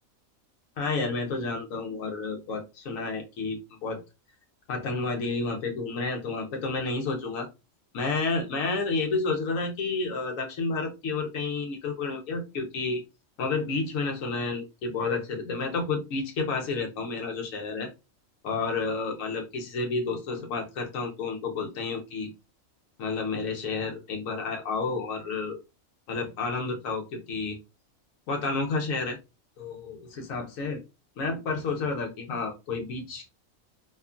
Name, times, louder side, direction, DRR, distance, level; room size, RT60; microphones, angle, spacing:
voice 1, 0.8-4.0 4.7-7.5 7.9-13.0 13.4-17.9 18.4-22.3 23.0-25.6 26.1-27.6 28.3-29.2 29.6-30.8 31.2-33.2, left 3 dB, 80° left, 2 dB, 1.1 m, -30 dB
2.9 x 2.3 x 2.3 m, 0.26 s
omnidirectional pair, 1.4 m